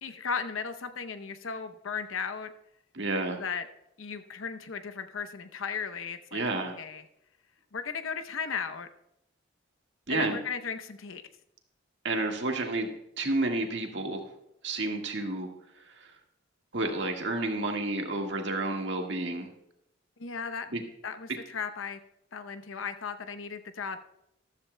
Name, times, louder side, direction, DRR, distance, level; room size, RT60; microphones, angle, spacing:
voice 1, 0.0-2.5 3.4-3.6 4.0-6.4 6.8-7.0 7.7-8.9 10.1-11.2 20.2-20.7 21.0-22.0 22.3-24.0, left 6 dB, 85° left, 10 dB, 0.7 m, -36 dB
voice 2, 2.9-3.4 6.3-6.7 10.1-10.4 12.0-12.9 13.2-14.2 14.6-15.5 15.9-16.1 16.7-19.5 20.7-20.8, right 2 dB, 65° right, 2 dB, 1.6 m, -30 dB
14.0 x 13.5 x 2.2 m, 0.80 s
head